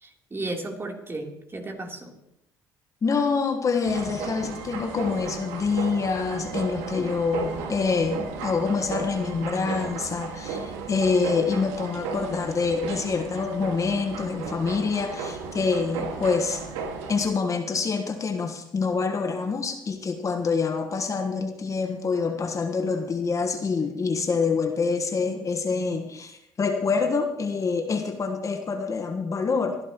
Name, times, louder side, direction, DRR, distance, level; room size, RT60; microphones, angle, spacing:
voice 1, 0.0-2.1, right 2 dB, 30° right, 0 dB, 3.4 m, -34 dB
voice 2, 3.0-16.6 17.1-29.8, left 4 dB, 40° left, 5 dB, 1.3 m, -26 dB
sound 1, 3.8-17.3, right 5 dB, 85° right, 1.9 m, -35 dB
23.0 x 11.5 x 3.0 m, 0.82 s
supercardioid pair, 70°, 9 cm